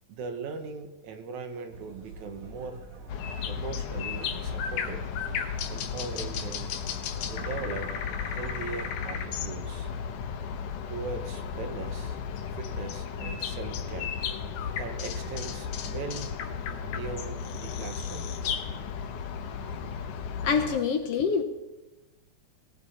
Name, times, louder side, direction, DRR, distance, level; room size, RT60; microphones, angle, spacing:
voice 1, 0.1-2.8 3.5-5.0 5.7-6.7 7.3-9.9 10.9-12.2 12.5-14.1 14.8-16.4 16.8-18.3, right 5 dB, 75° right, 7 dB, 2.6 m, -39 dB
sound 1, 1.7-8.9, right 3 dB, 60° right, 3.2 m, -46 dB
sound 2, 3.1-20.8, left 7 dB, 85° left, 2.5 m, -34 dB
voice 2, 20.4-21.4, left 6 dB, 65° left, 6 dB, 1.7 m, -25 dB
20.0 x 15.5 x 4.2 m, 1.1 s
omnidirectional pair, 3.4 m